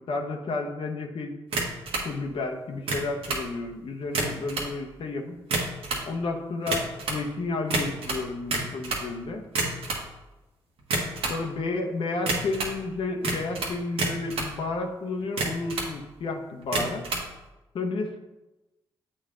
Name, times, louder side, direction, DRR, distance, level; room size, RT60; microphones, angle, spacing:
voice 1, 0.0-1.4 2.0-5.4 6.1-9.5 11.3-17.1 17.7-18.2, left 3 dB, 65° left, 3 dB, 0.8 m, -31 dB
sound 1, 1.5-2.1 2.7-3.5 4.0-4.7 5.4-6.1 6.7-7.2 7.7-9.1 9.5-10.1 10.8-11.4 12.3-12.8 13.2-14.5 15.2-15.9 16.6-17.3, right 3 dB, 75° right, 1.3 m, -29 dB
7.7 x 4.3 x 3.7 m, 1.0 s
supercardioid pair, 50°, 10 cm